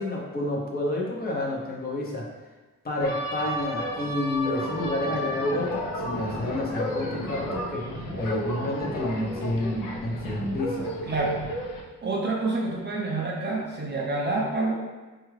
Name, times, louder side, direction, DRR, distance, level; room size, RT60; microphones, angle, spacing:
voice 1, 0.0-2.3 2.8-7.9 8.2-10.9, left 1 dB, 30° left, -3 dB, 0.6 m, -29 dB
sound 1, 3.0-11.8, equal, 75° left, 0.7 m, -32 dB
voice 2, 11.1-11.4 12.0-14.7, right 2 dB, 35° right, -2 dB, 0.5 m, -27 dB
4.4 x 2.4 x 3.1 m, 1.2 s
wide cardioid pair, 155°, 32 cm